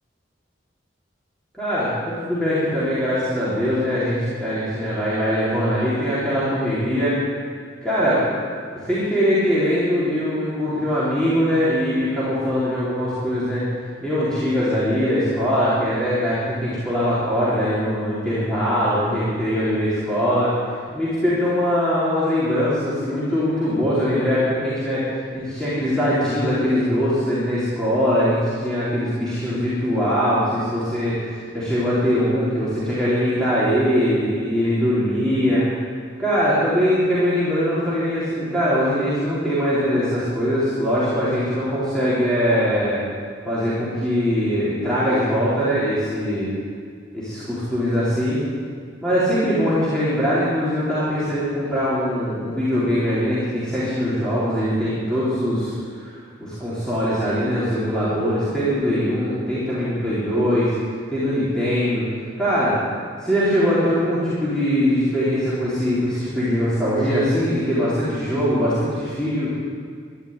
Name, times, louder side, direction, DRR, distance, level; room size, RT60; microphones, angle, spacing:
voice 1, 1.6-7.2 7.8-8.3 8.7-13.6 14.0-20.6 20.9-35.6 36.2-43.0 43.5-46.5 47.1-48.4 49.0-60.7 61.1-62.1 62.4-62.7 63.2-69.5, equal, 5° left, -11 dB, 4.0 m, -22 dB
13.0 x 11.5 x 9.7 m, 2.1 s
head